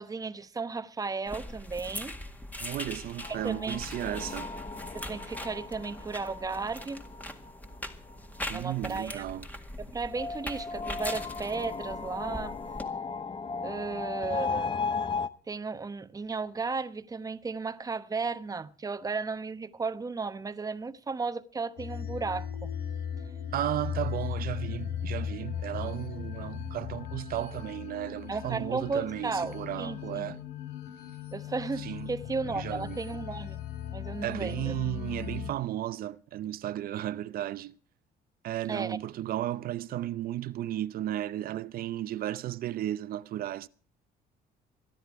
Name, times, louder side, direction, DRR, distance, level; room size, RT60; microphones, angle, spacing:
voice 1, 0.0-2.1 3.4-3.8 4.9-7.0 8.5-9.4 9.8-12.5 13.6-14.7 15.5-22.7 28.3-30.3 31.3-33.6 33.9-34.8 38.7-39.0, right 4 dB, 20° right, 1.1 m, -34 dB
sound 1, 1.3-12.8, left 1 dB, 10° left, 1.9 m, -41 dB
voice 2, 2.6-4.5 8.5-9.5 23.5-30.4 31.8-32.1 32.4-33.0 34.2-37.7 38.4-43.7, right 13 dB, 60° right, 0.6 m, -34 dB
sound 2, 3.2-8.6 10.1-15.3, left 4 dB, 30° left, 0.9 m, -36 dB
sound 3, 21.8-35.5, left 9 dB, 85° left, 2.8 m, -38 dB
23.5 x 10.5 x 4.7 m
cardioid pair, 110°, 17 cm